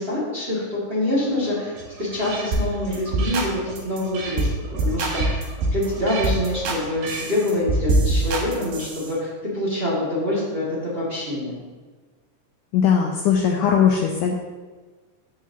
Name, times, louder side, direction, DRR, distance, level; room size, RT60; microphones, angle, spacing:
voice 1, 0.0-1.7 2.0-4.5 4.8-5.4 5.7-11.5, left 1 dB, 20° right, -7 dB, 1.7 m, -25 dB
sound 1, 1.2-7.8, right 3 dB, 65° right, 1.9 m, -37 dB
sound 2, 2.5-2.7 2.9-3.5 3.8-4.0 4.4-4.5 4.8-5.9 6.2-6.8 7.1-9.1, right 2 dB, 80° right, 3.2 m, -23 dB
voice 2, 12.7-14.3, left 7 dB, 80° left, 1 dB, 1.9 m, -19 dB
14.0 x 4.8 x 2.9 m, 1.4 s
omnidirectional pair, 4.1 m